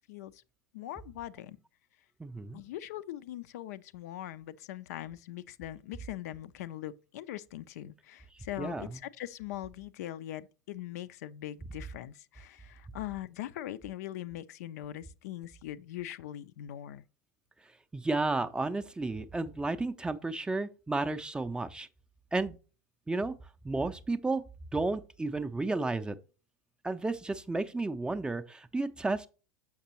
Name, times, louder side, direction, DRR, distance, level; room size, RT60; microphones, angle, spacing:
voice 1, 0.1-0.4 0.7-1.6 2.5-17.0, left 13 dB, 60° left, 0.3 m, -41 dB
voice 2, 2.2-2.6 8.6-9.0 17.9-21.9 22.3-22.6 23.1-23.3 23.6-24.4 24.7-26.2 26.8-29.3, right 3 dB, 10° right, 0.4 m, -32 dB
6.5 x 5.8 x 2.9 m
figure-of-eight pair, 85°, 10 cm